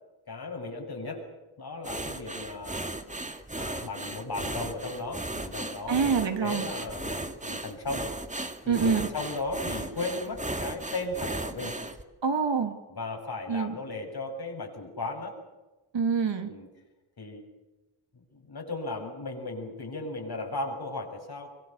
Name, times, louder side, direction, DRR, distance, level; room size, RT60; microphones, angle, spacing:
voice 1, 0.3-1.3 1.6-2.9 3.5-8.1 8.6-11.8 12.9-15.4 16.4-16.7 17.2-17.5 18.1-21.5, left 2 dB, 50° left, 3 dB, 7.3 m, -36 dB
sound 1, 1.8-12.0, right 2 dB, 15° right, 2.2 m, -36 dB
voice 2, 5.9-6.7 8.7-9.1 12.2-12.7 13.5-13.7 15.9-16.5, right 6 dB, 65° right, 6 dB, 3.1 m, -26 dB
25.0 x 23.5 x 6.8 m, 1.1 s
cardioid pair, 85°, 47 cm